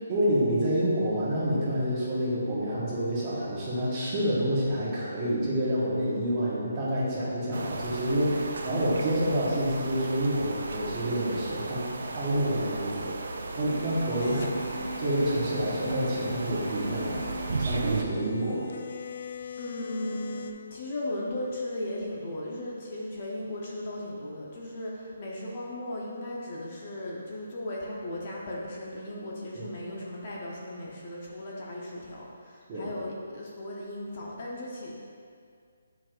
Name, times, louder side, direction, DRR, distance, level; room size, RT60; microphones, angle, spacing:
voice 1, 0.1-13.1 13.5-17.2 17.6-18.6 29.5-29.6 32.7-32.9, right 1 dB, 20° right, -8 dB, 1.4 m, -28 dB
sound 1, 7.5-18.0, right 3 dB, 65° right, 0.6 m, -35 dB
sound 2, 13.7-20.5, left 2 dB, 60° left, 0.4 m, -39 dB
voice 2, 19.6-34.9, left 1 dB, 40° left, -4 dB, 0.9 m, -36 dB
8.4 x 4.7 x 2.5 m, 2.2 s
hypercardioid pair, 165°, 0 cm